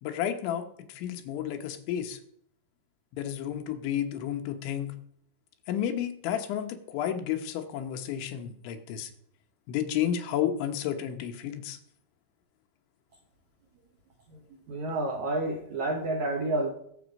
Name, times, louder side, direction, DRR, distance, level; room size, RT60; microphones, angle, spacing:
voice 1, 0.0-2.2 3.1-5.0 5.7-9.1 9.7-11.8, left 10 dB, 80° left, 3.4 m, -31 dB
voice 2, 14.7-16.7, right 2 dB, 75° right, 1.7 m, -29 dB
20.0 x 7.2 x 5.3 m
omnidirectional pair, 5.3 m